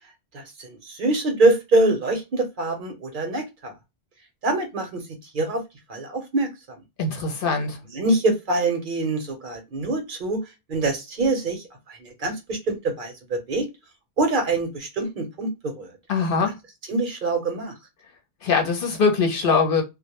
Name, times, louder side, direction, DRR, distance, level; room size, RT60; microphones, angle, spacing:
voice 1, 0.3-3.7 4.4-5.0 5.3-5.6 5.9-6.5 7.9-10.4 10.7-13.7 14.2-15.9 16.9-17.7, right 2 dB, 55° right, 0.8 m, -24 dB
voice 2, 7.0-7.8 16.1-16.5 18.4-19.8, left 4 dB, 60° left, 0.8 m, -22 dB
2.1 x 2.1 x 2.9 m
omnidirectional pair, 1.1 m